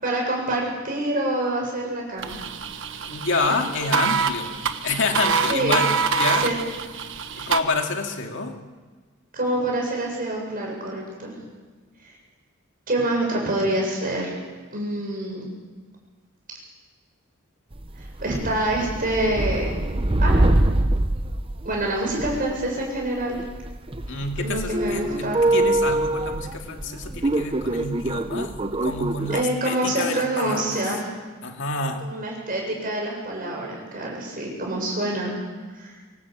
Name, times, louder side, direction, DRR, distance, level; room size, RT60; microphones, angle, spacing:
voice 1, 0.0-2.4 5.5-5.8 6.4-6.6 7.3-7.5 9.3-11.4 12.9-14.3 14.7-15.5 18.0-19.7 20.2-20.5 21.6-23.4 24.4-25.4 29.3-31.1 32.0-35.3 35.7-35.9, right 1 dB, 45° right, -1 dB, 7.8 m, -26 dB
sound 1, 2.2-7.6, right 5 dB, 60° right, 1.4 m, -25 dB
voice 2, 3.0-4.6 4.8-6.5 7.4-8.6 24.1-31.0 31.4-32.1, left 3 dB, 65° left, 3 dB, 2.5 m, -28 dB
sound 2, 17.7-29.4, right 1 dB, 25° right, 0.8 m, -24 dB
25.0 x 18.0 x 8.4 m, 1.4 s
head